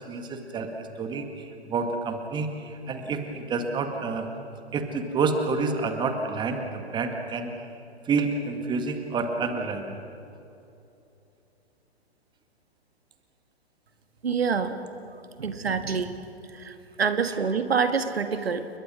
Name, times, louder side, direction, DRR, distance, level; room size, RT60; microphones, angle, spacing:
voice 1, 0.0-4.3 4.7-7.5 8.1-10.0, right 4 dB, 15° right, 5 dB, 1.9 m, -29 dB
voice 2, 14.2-14.8 15.1-16.2 16.5-18.7, right 5 dB, 65° right, 8 dB, 1.7 m, -27 dB
30.0 x 22.0 x 6.2 m, 2.8 s
figure-of-eight pair, 115°, 33 cm